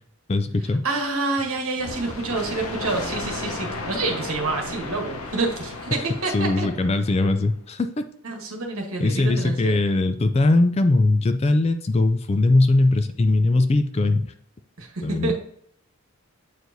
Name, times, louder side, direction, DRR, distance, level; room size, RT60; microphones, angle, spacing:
voice 1, 0.3-0.8 6.3-8.0 9.0-14.2 15.0-15.3, left 2 dB, 30° left, 9 dB, 0.3 m, -20 dB
voice 2, 0.8-6.7 8.2-9.8 14.8-15.3, right 3 dB, 70° right, 2 dB, 1.3 m, -28 dB
sound 1, 1.8-7.4, left 3 dB, 80° left, 0.7 m, -34 dB
7.9 x 4.6 x 2.6 m, 0.63 s
head